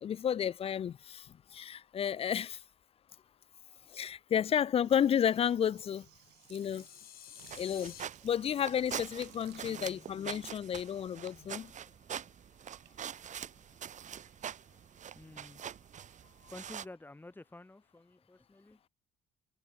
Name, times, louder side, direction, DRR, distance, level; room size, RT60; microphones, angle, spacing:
voice 1, 0.0-1.3 1.5-2.6 3.9-6.1 6.5-6.8 7.5-7.9 8.2-11.7, left 9 dB, 35° left, 0.4 m, -31 dB
sound 1, 4.8-11.7 12.0-14.4, right 19 dB, 85° right, 4.0 m, -61 dB
sound 2, 6.2-8.0, left 12 dB, 60° left, 2.4 m, -52 dB
sound 3, 7.4-16.8, right 9 dB, 45° right, 1.7 m, -44 dB
voice 2, 9.7-10.1 15.2-15.6 16.5-18.9, left 2 dB, 10° left, 5.3 m, -51 dB
cardioid pair, 110°, 17 cm